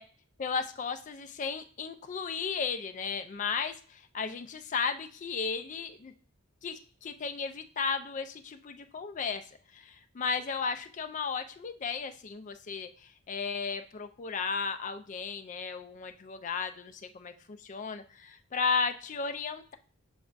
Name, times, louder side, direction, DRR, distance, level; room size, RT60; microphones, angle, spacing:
voice 1, 0.4-6.1 6.6-9.4 9.7-19.7, left 5 dB, 35° left, 8 dB, 0.3 m, -34 dB
6.2 x 3.4 x 2.4 m, 0.43 s
head